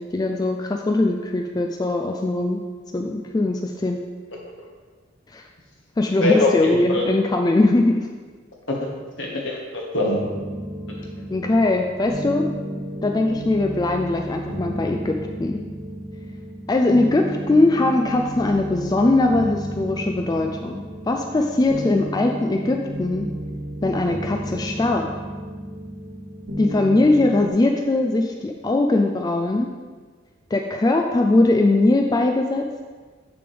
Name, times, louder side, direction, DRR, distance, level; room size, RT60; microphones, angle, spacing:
voice 1, 0.0-2.6 2.9-4.0 5.3-5.4 6.0-8.1 11.3-12.5 13.0-15.6 16.7-23.3 23.8-25.1 26.6-29.7 30.5-32.7, left 2 dB, 20° left, 3 dB, 0.3 m, -20 dB
voice 2, 6.2-7.0 8.7-8.8 9.2-10.2 11.2-11.3, left 2 dB, 75° left, -2 dB, 1.5 m, -22 dB
sound 1, 10.2-27.5, equal, 90° right, 1.7 m, -32 dB
6.9 x 6.7 x 3.4 m, 1.4 s
head